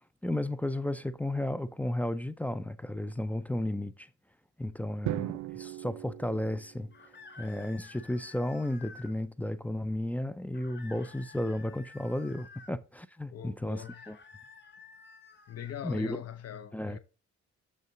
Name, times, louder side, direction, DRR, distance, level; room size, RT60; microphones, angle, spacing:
voice 1, 0.2-4.1 4.6-6.9 7.4-14.2 15.8-16.2 16.7-17.0, left 1 dB, 5° left, 0.4 m, -33 dB
Drum, 5.1-7.2, right 16 dB, 70° right, 0.5 m, -38 dB
sound 1, 6.9-9.1 10.5-12.7 13.7-15.8, left 4 dB, 35° left, 1.4 m, -52 dB
voice 2, 13.3-14.1 15.5-17.0, left 9 dB, 55° left, 0.8 m, -42 dB
6.7 x 5.4 x 3.8 m
cardioid pair, 90°, 30 cm